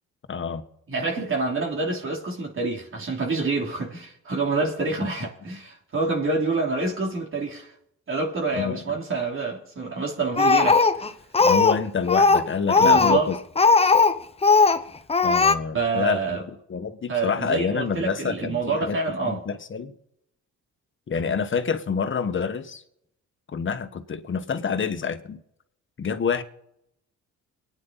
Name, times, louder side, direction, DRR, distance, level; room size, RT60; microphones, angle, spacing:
voice 1, 0.3-0.6 8.6-9.0 11.4-13.3 15.2-19.0 19.2-19.9 21.1-22.8 23.5-25.4 26.0-26.4, left 6 dB, 40° left, 1.5 m, -27 dB
voice 2, 0.9-7.7 8.1-11.1 12.8-13.3 15.7-16.4 17.1-19.4, right 4 dB, 45° right, 3.3 m, -27 dB
Speech, 10.4-11.8 12.1-14.2 14.4-14.8 15.1-15.5, left 4 dB, 20° left, 0.9 m, -18 dB
23.5 x 9.9 x 4.1 m
cardioid pair, 90°, 30 cm